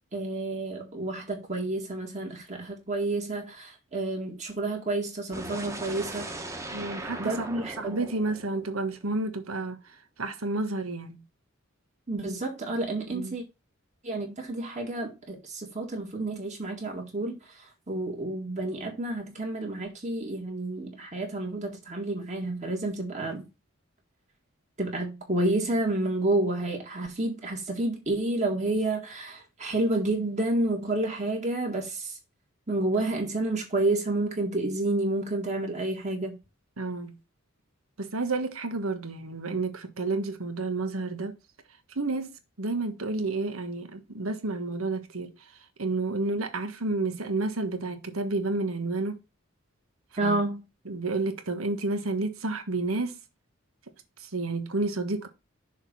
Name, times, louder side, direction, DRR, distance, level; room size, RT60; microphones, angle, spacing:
voice 1, 0.1-6.3 7.2-7.9 12.1-13.4 14.0-23.4 24.8-32.2 32.7-36.4 50.2-50.6, right 2 dB, 35° right, 2.0 m, -30 dB
sound 1, 5.3-9.3, right 2 dB, 15° right, 1.2 m, -39 dB
voice 2, 6.7-7.5 7.8-9.8 10.2-11.2 13.1-13.4 36.8-37.1 38.0-41.3 41.9-42.3 42.6-45.3 45.8-49.2 50.2-50.4 50.8-53.2 54.2-55.3, right 3 dB, 85° right, 1.4 m, -30 dB
6.5 x 3.8 x 6.2 m
head